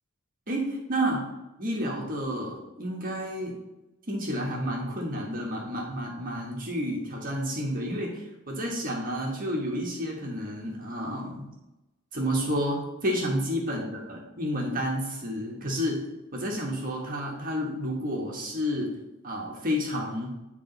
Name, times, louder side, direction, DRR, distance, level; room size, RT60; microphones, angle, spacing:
voice 1, 0.5-1.3 1.6-3.5 4.1-11.5 12.1-16.0 16.3-18.9 19.2-20.3, equal, 40° right, -2 dB, 1.3 m, -30 dB
9.9 x 3.4 x 3.9 m, 0.99 s
head